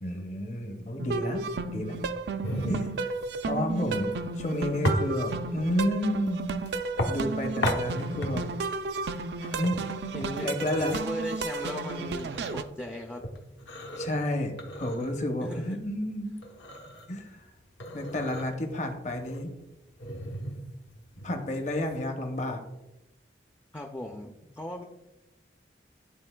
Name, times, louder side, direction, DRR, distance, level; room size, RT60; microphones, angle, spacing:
voice 1, 0.0-1.4 1.7-2.0 2.7-2.9 3.5-6.6 7.0-8.5 9.6-9.8 10.4-11.0 14.0-16.4 17.1-17.5 17.9-19.5 21.2-22.6, left 1 dB, 40° left, 4 dB, 0.7 m, -31 dB
sound 1, 1.0-12.6, right 3 dB, 65° right, 0.4 m, -33 dB
sound 2, 2.4-22.0, equal, 75° left, 0.8 m, -36 dB
voice 2, 10.1-13.3 15.4-15.8 23.7-24.8, left 1 dB, 10° left, 1 dB, 0.3 m, -37 dB
11.0 x 3.9 x 2.2 m, 1.0 s
head